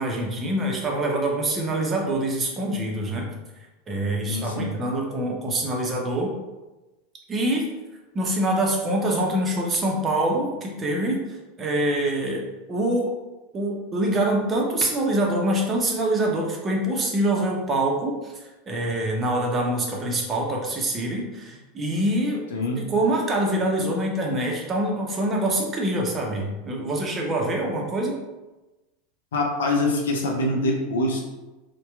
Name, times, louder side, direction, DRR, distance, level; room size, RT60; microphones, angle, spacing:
voice 1, 0.0-3.3 3.5-6.3 7.3-7.7 8.1-13.1 13.5-22.4 22.8-28.2, right 1 dB, 25° right, -1 dB, 0.6 m, -25 dB
voice 2, 4.3-4.7 22.5-22.8 29.3-31.2, left 1 dB, 80° left, 0 dB, 0.5 m, -24 dB
2.7 x 2.2 x 2.3 m, 1.1 s
hypercardioid pair, 90°, 0 cm